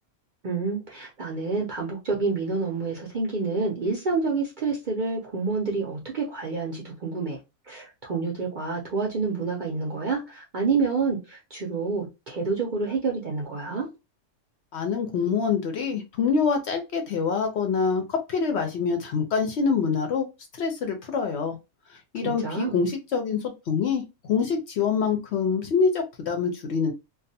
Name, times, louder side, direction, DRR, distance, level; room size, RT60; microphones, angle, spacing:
voice 1, 0.4-7.4 7.7-13.9 22.2-22.8, right 4 dB, 65° right, 0.4 m, -28 dB
voice 2, 14.7-20.3 20.6-21.6 21.9-24.0 24.3-26.9, left 5 dB, 65° left, 0.7 m, -25 dB
2.3 x 2.3 x 2.6 m
omnidirectional pair, 1.5 m